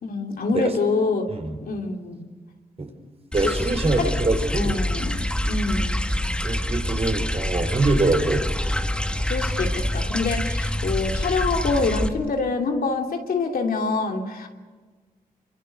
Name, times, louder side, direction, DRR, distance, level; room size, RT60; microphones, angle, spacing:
voice 1, 0.0-1.3 1.6-2.2 3.4-3.5 4.0-4.1 4.5-6.0 9.2-14.5, left 4 dB, 70° left, 2 dB, 3.0 m, -26 dB
sound 1, 3.3-12.1, left 1 dB, 5° left, 2.0 m, -26 dB
voice 2, 3.3-4.8 6.4-8.4 9.0-9.1, right 3 dB, 40° right, 5 dB, 4.9 m, -24 dB
27.5 x 25.0 x 6.7 m, 1.3 s
cardioid pair, 60°, 16 cm